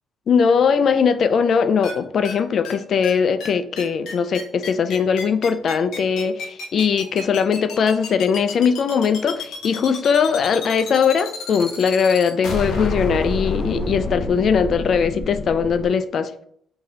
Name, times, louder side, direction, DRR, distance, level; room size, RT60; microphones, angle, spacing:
voice 1, 0.3-16.3, left 6 dB, 60° left, 11 dB, 0.3 m, -20 dB
sound 1, 1.8-1.9 2.2-2.3 2.6-2.7 3.0-3.1 3.4-3.5 3.8-15.9, left 3 dB, 80° left, 0.8 m, -29 dB
3.0 x 2.7 x 3.8 m, 0.64 s
cardioid pair, 90°, 0 cm